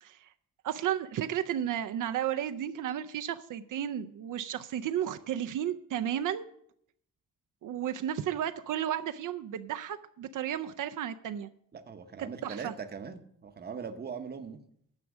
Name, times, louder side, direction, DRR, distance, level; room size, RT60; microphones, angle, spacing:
voice 1, 0.6-6.5 7.6-11.5 12.4-12.7, right 10 dB, 75° right, 8 dB, 0.5 m, -33 dB
voice 2, 11.7-14.6, right 6 dB, 30° right, 9 dB, 0.7 m, -41 dB
9.7 x 6.1 x 7.0 m, 0.71 s
wide cardioid pair, 165°, 32 cm